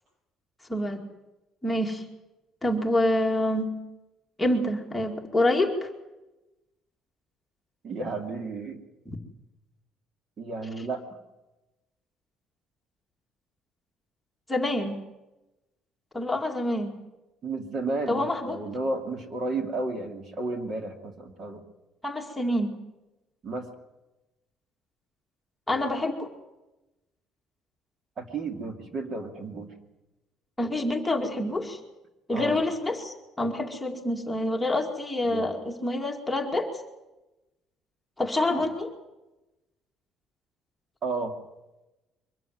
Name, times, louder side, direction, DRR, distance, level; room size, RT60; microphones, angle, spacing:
voice 1, 0.7-1.0 1.6-2.0 2.6-3.7 4.4-5.9 9.1-9.2 14.5-15.0 16.1-16.9 18.1-18.6 22.0-22.7 25.7-26.3 30.6-31.8 32.3-36.7 38.2-38.9, left 1 dB, 5° left, 1 dB, 2.3 m, -27 dB
voice 2, 7.8-8.8 10.4-11.0 17.4-21.6 23.4-23.7 28.2-29.7 32.3-32.6 35.2-35.5 38.5-38.6 41.0-41.3, right 3 dB, 40° right, 5 dB, 2.7 m, -32 dB
23.5 x 14.5 x 9.4 m, 1.0 s
cardioid pair, 135°, 0 cm